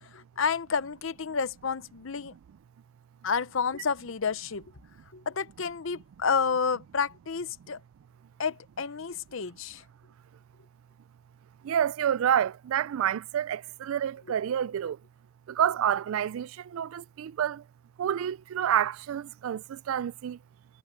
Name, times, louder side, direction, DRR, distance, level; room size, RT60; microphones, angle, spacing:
voice 1, 0.0-2.3 3.2-4.7 5.1-7.8 8.4-9.8, left 5 dB, 65° left, 0.7 m, -30 dB
voice 2, 11.6-15.0 15.5-17.6 18.0-20.4, right 9 dB, 75° right, 0.3 m, -28 dB
head